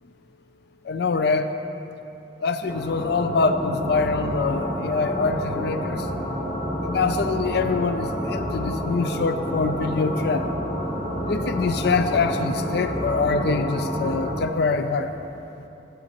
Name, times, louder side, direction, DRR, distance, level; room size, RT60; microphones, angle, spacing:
voice 1, 0.9-1.5 2.4-6.0 6.8-10.5 11.3-15.1, left 4 dB, 65° left, 9 dB, 0.4 m, -24 dB
sound 1, 2.7-14.4, equal, 35° left, 1.3 m, -29 dB
11.0 x 10.5 x 2.9 m, 2.9 s
head